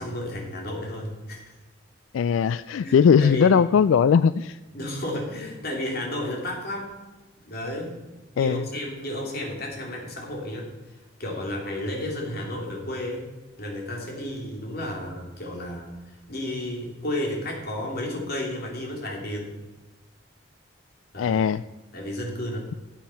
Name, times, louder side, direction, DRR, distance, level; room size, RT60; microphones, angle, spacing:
voice 1, 0.0-1.5 2.8-3.6 4.7-7.0 7.5-8.0 8.3-10.7 11.2-13.3 13.6-15.9 16.3-19.5 21.1-21.4 21.9-22.7, left 1 dB, 50° left, -1 dB, 3.2 m, -32 dB
voice 2, 2.1-4.6 8.4-8.6 21.2-21.6, left 7 dB, 85° left, 15 dB, 0.3 m, -19 dB
13.0 x 8.2 x 5.7 m, 1.1 s
head